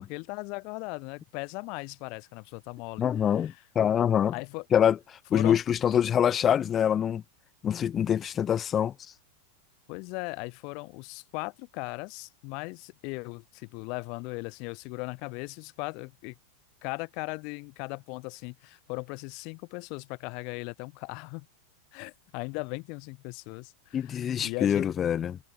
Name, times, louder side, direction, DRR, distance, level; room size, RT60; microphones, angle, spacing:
voice 1, 0.0-3.6 4.3-4.6 5.3-5.6 9.9-16.3 16.8-21.5 21.9-24.9, left 32 dB, 50° left, 4.8 m, -38 dB
voice 2, 3.0-4.3 4.7-5.0 5.3-7.2 7.6-8.9 23.9-25.4, left 9 dB, 30° left, 2.3 m, -25 dB
figure-of-eight pair, 90°, 0 cm